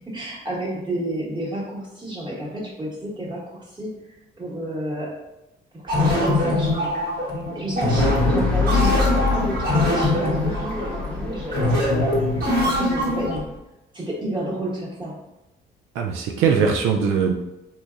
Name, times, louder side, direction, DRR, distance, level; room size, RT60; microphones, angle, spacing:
voice 1, 0.1-5.1 5.7-6.9 7.5-12.3 12.6-13.5 13.9-15.1, right 1 dB, 20° right, -5 dB, 1.4 m, -30 dB
sound 1, 5.9-13.4, left 1 dB, 50° right, 1.5 m, -22 dB
sound 2, 8.0-13.6, left 4 dB, 5° left, 0.7 m, -27 dB
voice 2, 8.0-8.5 16.0-17.3, right 6 dB, 85° right, 2 dB, 0.4 m, -21 dB
4.1 x 2.6 x 2.4 m, 0.92 s
cardioid pair, 90°, 20 cm